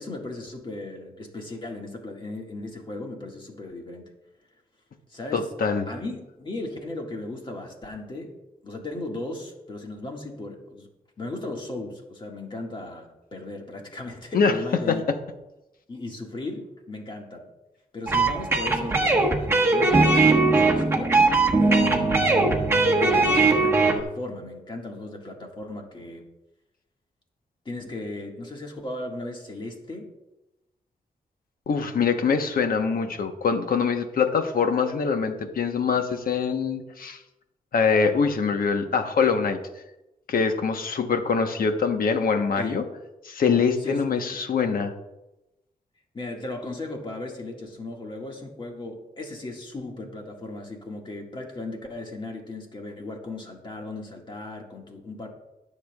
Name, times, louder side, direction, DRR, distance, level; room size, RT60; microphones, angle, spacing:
voice 1, 0.0-4.1 5.1-5.5 5.9-8.4 8.6-10.9 11.2-15.0 15.9-17.5 17.9-21.2 21.6-22.6 23.0-26.2 27.7-30.1 42.6-42.8 43.8-44.0 46.1-55.3, left 2 dB, 30° left, 0 dB, 1.9 m, -36 dB
voice 2, 5.3-5.9 14.3-14.6 14.9-15.0 31.7-37.2 37.7-39.6 40.3-42.8 43.2-44.9, left 5 dB, 70° left, 6 dB, 1.1 m, -24 dB
sound 1, 18.1-24.0, right 3 dB, 15° right, 1.3 m, -20 dB
21.5 x 7.2 x 2.4 m, 0.96 s
wide cardioid pair, 135°, 15 cm